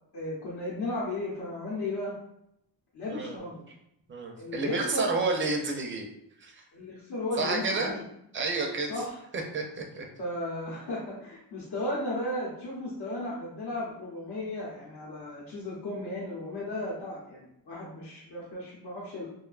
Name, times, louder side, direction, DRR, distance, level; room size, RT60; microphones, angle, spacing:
voice 1, 0.1-2.1 2.9-3.6 4.4-5.1 6.7-8.0 8.9-9.2 10.2-19.3, left 1 dB, 70° left, -7 dB, 0.8 m, -35 dB
voice 2, 3.1-3.4 4.1-6.1 6.4-6.6 7.4-8.0 8.3-8.9 9.3-10.1, right 3 dB, 30° right, 2 dB, 0.4 m, -30 dB
2.4 x 2.2 x 2.3 m, 0.79 s
wide cardioid pair, 115°, 42 cm